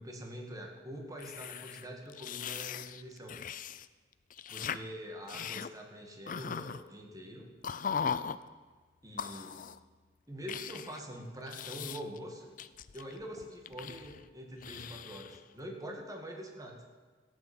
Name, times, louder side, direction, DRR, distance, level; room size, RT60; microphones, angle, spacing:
voice 1, 0.0-3.4 4.5-7.5 9.0-9.6 10.3-12.5 12.9-16.8, equal, 20° right, 2 dB, 2.0 m, -45 dB
sound 1, 1.2-3.9 4.1-4.8 5.3-5.7 6.3-6.8 7.6-8.4 9.2-9.8 10.5-11.0 11.5-12.2 12.6-14.3 14.6-15.4, left 7 dB, 50° left, 0.5 m, -39 dB
15.0 x 8.2 x 8.7 m, 1.4 s
head